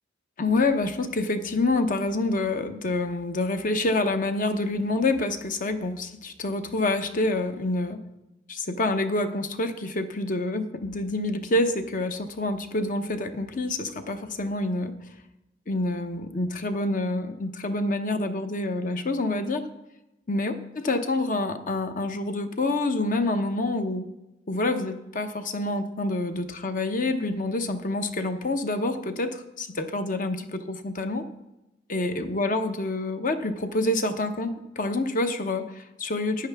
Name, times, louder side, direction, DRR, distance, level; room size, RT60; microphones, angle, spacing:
voice 1, 0.4-8.0 8.5-14.9 15.7-19.7 20.3-24.1 24.5-31.2 31.9-36.5, left 2 dB, 45° left, 8 dB, 0.8 m, -27 dB
12.5 x 9.1 x 3.5 m, 0.94 s
head